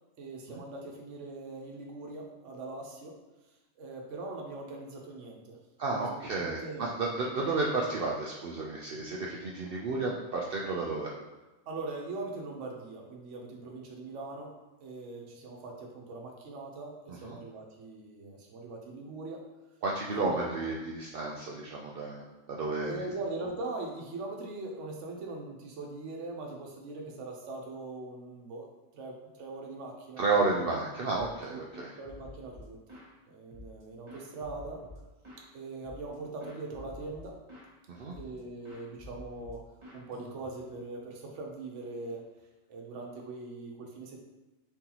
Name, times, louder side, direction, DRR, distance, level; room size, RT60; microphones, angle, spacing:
voice 1, 0.2-3.2 3.8-5.6 5.9-6.9 11.7-19.4 20.1-20.5 22.9-28.7 28.9-30.7 31.5-31.6 32.0-33.0 33.3-34.8 35.5-37.3 38.2-39.6 39.9-42.2 42.7-44.2, right 3 dB, 75° right, 0 dB, 1.1 m, -41 dB
voice 2, 5.8-11.1 17.2-17.4 19.8-23.0 30.2-31.9 37.9-38.1, right 3 dB, 60° right, -3 dB, 0.7 m, -32 dB
sound 1, 31.1-31.4 31.7-33.1 33.5-35.5 35.8-36.2 36.4-37.7 38.1-38.4 38.6-40.7, left 1 dB, 25° right, 0.9 m, -50 dB
4.5 x 3.9 x 2.9 m, 1.1 s
omnidirectional pair, 1.3 m